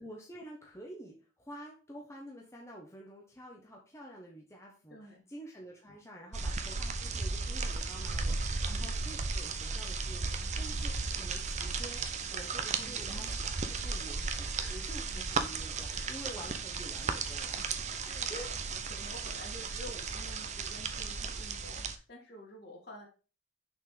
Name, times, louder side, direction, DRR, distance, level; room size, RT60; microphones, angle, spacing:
voice 1, 0.0-13.3 13.7-17.9 18.3-18.6, equal, 15° left, -2 dB, 1.1 m, -49 dB
voice 2, 4.9-5.2 8.7-8.9 10.7-10.8 12.7-13.7 14.6-14.8 15.9-16.2 17.9-18.6 18.9-23.1, left 1 dB, 55° left, -2 dB, 2.7 m, -50 dB
sound 1, 6.3-22.0, right 4 dB, 35° right, 0.6 m, -35 dB
6.3 x 4.3 x 5.1 m, 0.35 s
head